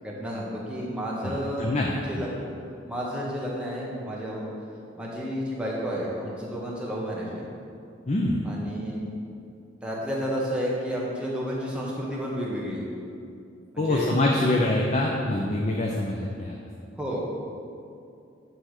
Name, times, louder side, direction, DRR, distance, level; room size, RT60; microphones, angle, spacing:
voice 1, 0.0-1.7 2.1-4.5 5.0-7.5 8.4-9.0 9.8-12.8 13.7-14.5 17.0-17.2, equal, 5° right, -5 dB, 1.3 m, -31 dB
voice 2, 1.2-2.0 8.1-8.4 13.8-16.6, left 1 dB, 35° left, -1 dB, 0.6 m, -25 dB
9.9 x 3.5 x 6.5 m, 2.5 s
head